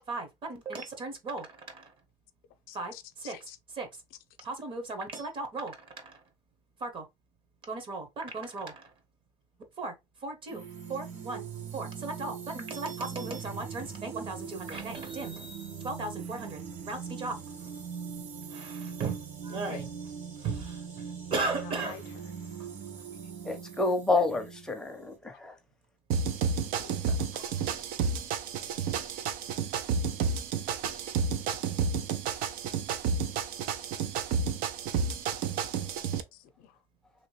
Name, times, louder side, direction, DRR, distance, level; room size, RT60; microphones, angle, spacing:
voice 1, 0.0-1.9 2.7-3.9 4.4-6.2 6.8-7.1 7.7-8.9 9.8-9.9 10.2-10.6 10.9-11.5 11.7-17.7 18.5-19.9 20.4-22.0 22.6-22.7, right 3 dB, 35° right, 0.9 m, -37 dB
voice 2, 2.7-3.6 19.7-19.8 21.8-22.0 26.7-27.5 36.3-36.7, left 10 dB, 80° left, 0.6 m, -47 dB
sound 1, 10.5-25.2, right 6 dB, 55° right, 1.3 m, -41 dB
voice 3, 23.4-25.5, left 3 dB, 5° left, 0.6 m, -29 dB
sound 2, 26.1-36.2, right 5 dB, 75° right, 0.5 m, -31 dB
3.0 x 2.9 x 3.1 m
cardioid pair, 165°, 15 cm